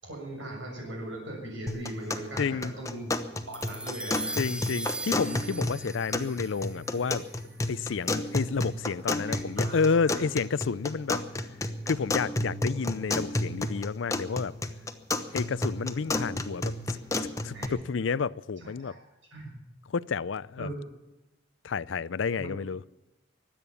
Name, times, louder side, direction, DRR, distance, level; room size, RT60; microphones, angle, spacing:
voice 1, 0.0-3.2 3.5-4.5 9.2-10.3 12.9-13.0 17.5-17.8 18.6-19.0 19.3-19.5 20.6-20.9 22.4-22.5, right 1 dB, 70° right, 6.8 m, -40 dB
sound 1, 1.7-17.7, left 2 dB, 15° left, 1.0 m, -32 dB
voice 2, 2.4-2.7 4.4-7.2 7.7-11.2 11.9-14.5 15.3-16.7 17.4-18.9 19.9-20.7 21.6-22.8, left 5 dB, 75° left, 0.5 m, -30 dB
sound 2, 3.5-8.1, right 2 dB, 5° right, 0.5 m, -40 dB
23.5 x 8.9 x 6.9 m
head